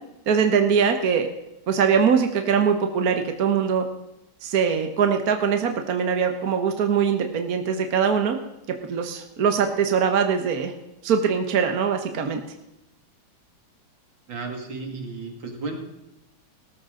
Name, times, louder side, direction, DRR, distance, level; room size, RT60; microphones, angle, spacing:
voice 1, 0.3-1.3 1.7-3.8 4.4-8.4 8.9-10.7 11.0-12.4, right 6 dB, 50° right, 5 dB, 1.4 m, -22 dB
voice 2, 14.3-15.8, right 3 dB, 65° right, 3 dB, 3.0 m, -33 dB
18.0 x 14.0 x 3.8 m, 0.91 s
omnidirectional pair, 2.2 m